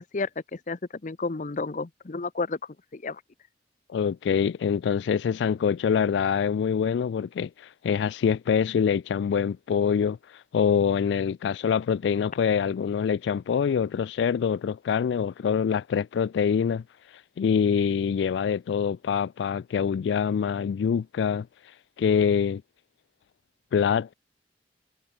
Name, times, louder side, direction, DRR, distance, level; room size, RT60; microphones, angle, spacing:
voice 1, 0.0-2.6 2.9-3.2, left 3 dB, 45° left, 0.7 m, -31 dB
voice 2, 3.9-22.6 23.7-24.1, left 7 dB, 80° left, 0.3 m, -25 dB
head